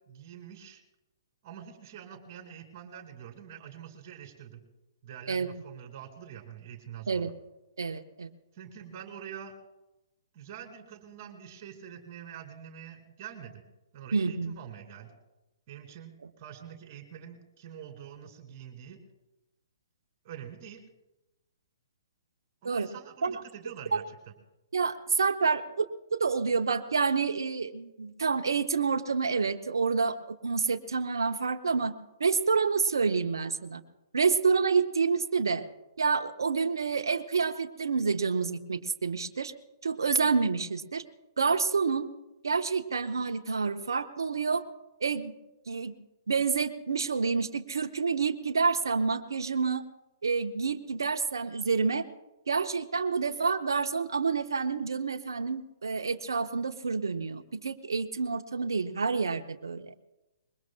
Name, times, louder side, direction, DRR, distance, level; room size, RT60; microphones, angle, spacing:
voice 1, 0.1-0.8 1.4-4.6 5.0-7.3 8.5-9.6 10.3-13.6 13.9-15.1 15.7-19.0 20.2-20.8 22.6-24.3, right 9 dB, 40° right, 5 dB, 2.5 m, -45 dB
voice 2, 7.8-8.3 14.1-14.5 22.6-22.9 23.2-23.4 23.9-24.0 24.7-31.9 32.2-33.8 34.1-35.6 36.0-39.5 39.8-41.0 41.4-42.1 42.4-44.6 45.0-45.3 45.7-45.9 46.3-49.8 50.2-52.1 52.5-59.9, right 5 dB, 70° right, 7 dB, 0.8 m, -28 dB
25.0 x 21.5 x 2.2 m, 1.0 s
figure-of-eight pair, 125°, 2 cm